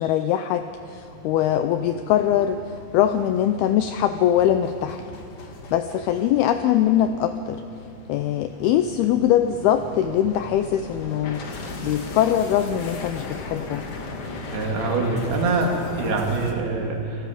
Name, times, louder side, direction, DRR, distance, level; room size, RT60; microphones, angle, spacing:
voice 1, 0.0-2.6 2.9-5.0 5.7-7.6 8.1-11.4 11.8-13.8, left 10 dB, 85° left, 9 dB, 2.2 m, -22 dB
sound 1, 0.5-16.5, left 3 dB, 60° left, 1.5 m, -38 dB
voice 2, 14.5-17.2, right 3 dB, 65° right, 1 dB, 4.0 m, -24 dB
28.5 x 18.5 x 5.0 m, 2.5 s
omnidirectional pair, 5.1 m